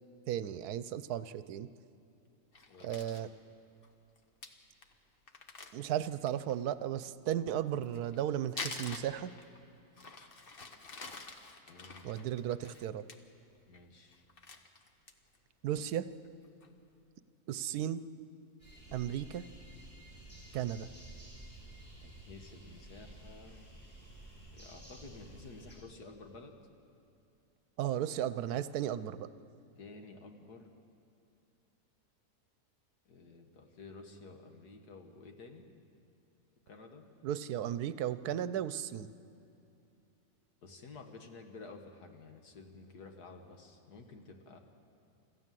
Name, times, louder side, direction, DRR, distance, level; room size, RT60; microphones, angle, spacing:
voice 1, 0.3-1.7 2.8-3.3 5.7-9.3 12.0-13.1 15.6-16.1 17.5-18.0 18.9-19.4 20.5-20.9 27.8-29.3 37.2-39.1, right 11 dB, 80° right, 14 dB, 1.2 m, -35 dB
Crumpling crinkling, 2.5-3.3 3.8-3.9 4.2-4.3 4.4-4.5 4.8-4.9 5.3-6.5 7.7-9.6 10.0-13.2 13.5-13.8 14.1-15.4 15.8-15.9 16.2-16.7, left 3 dB, 40° left, 1.2 m, -46 dB
voice 2, 11.7-12.2 13.7-14.2 22.0-23.6 24.5-26.5 29.8-30.7 33.1-35.7 36.7-37.0 40.6-44.6, left 3 dB, 90° left, 4 dB, 2.1 m, -52 dB
sound 1, 18.6-25.8, right 1 dB, 5° left, 6.9 m, -52 dB
26.0 x 14.5 x 7.6 m, 2.7 s
omnidirectional pair, 1.6 m